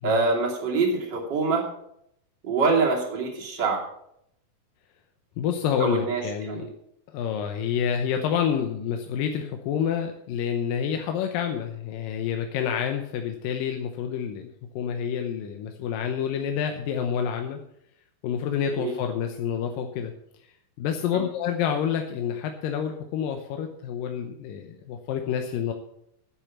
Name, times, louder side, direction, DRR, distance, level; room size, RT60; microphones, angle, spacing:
voice 1, 0.0-1.7 2.4-3.8 5.8-6.7 18.7-18.9 21.1-21.2, right 4 dB, 30° right, -1 dB, 2.9 m, -25 dB
voice 2, 5.4-6.6 7.1-14.5 14.8-17.6 18.2-20.1 20.8-25.7, left 8 dB, 75° left, 4 dB, 2.5 m, -28 dB
10.5 x 8.6 x 7.1 m, 0.74 s
omnidirectional pair, 4.2 m